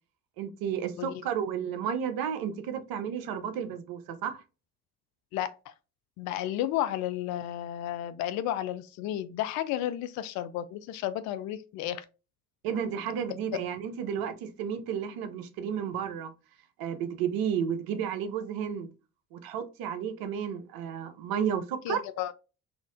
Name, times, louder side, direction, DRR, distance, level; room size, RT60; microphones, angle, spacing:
voice 1, 0.4-4.4 12.6-16.3 16.8-18.9 19.3-22.0, right 8 dB, 50° right, 0.7 m, -32 dB
voice 2, 5.3-5.7 6.2-12.1 21.8-22.3, left 12 dB, 45° left, 0.4 m, -32 dB
4.2 x 2.6 x 2.3 m
figure-of-eight pair, 50°, 45 cm